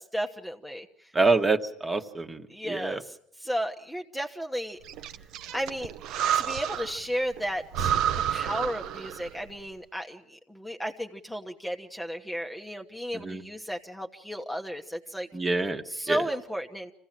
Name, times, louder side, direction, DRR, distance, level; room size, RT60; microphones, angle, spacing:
voice 1, 0.0-1.1 2.5-4.8 5.5-5.9 6.3-7.9 8.3-15.3 15.8-16.9, equal, 5° left, 3 dB, 1.1 m, -34 dB
voice 2, 1.1-2.4 2.7-3.0 13.1-13.4 15.3-16.2, right 3 dB, 20° right, 6 dB, 1.4 m, -26 dB
Breathing, 4.9-7.0 7.4-7.5 7.7-9.4, right 10 dB, 65° right, 0.8 m, -29 dB
26.0 x 16.0 x 7.5 m, 0.72 s
supercardioid pair, 100°, 0 cm